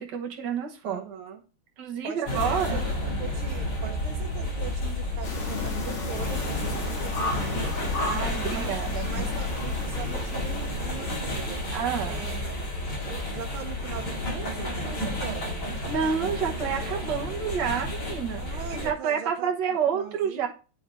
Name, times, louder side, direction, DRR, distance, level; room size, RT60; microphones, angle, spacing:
voice 1, 0.0-1.0 1.8-2.9 8.0-9.3 11.7-12.3 15.9-20.5, right 7 dB, 60° right, 1 dB, 1.7 m, -29 dB
voice 2, 0.8-1.4 2.0-7.8 8.5-8.8 9.1-11.6 12.0-12.6 13.1-15.6 18.4-19.5 19.9-20.5, right 8 dB, 85° right, 6 dB, 1.7 m, -41 dB
sound 1, 2.3-18.9, left 1 dB, 60° left, 2.7 m, -31 dB
sound 2, 5.2-11.6, left 2 dB, 80° left, 2.5 m, -36 dB
10.0 x 3.6 x 3.4 m, 0.34 s
omnidirectional pair, 2.3 m